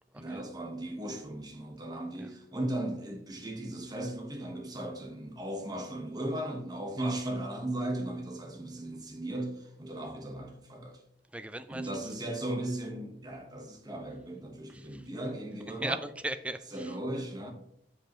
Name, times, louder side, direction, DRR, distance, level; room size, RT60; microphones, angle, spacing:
voice 1, 0.1-11.0 11.7-16.0 16.7-17.5, right 1 dB, 25° right, 1.3 m, -37 dB
voice 2, 11.3-11.9 14.7-15.1 15.8-16.9, right 1 dB, 5° right, 0.4 m, -38 dB
7.6 x 6.8 x 3.1 m
head